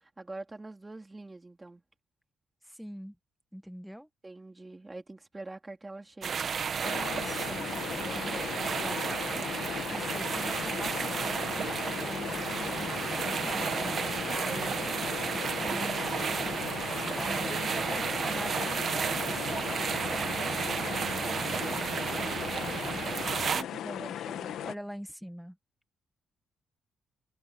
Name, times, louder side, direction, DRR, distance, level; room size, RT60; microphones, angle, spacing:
voice 1, 0.2-1.8 4.2-6.4 8.0-9.6 14.3-16.0 17.3-18.3 23.5-24.7, right 2 dB, 20° right, 3.9 m, -45 dB
voice 2, 2.6-3.2 3.5-4.1 6.8-8.4 9.9-14.6 15.6-16.6 17.2-22.3 24.7-25.6, equal, ahead, 1.8 m, -44 dB
sound 1, 6.2-23.6, right 6 dB, 50° right, 1.6 m, -32 dB
sound 2, 6.8-24.7, left 11 dB, 75° left, 1.6 m, -37 dB
cardioid pair, 90°, 0 cm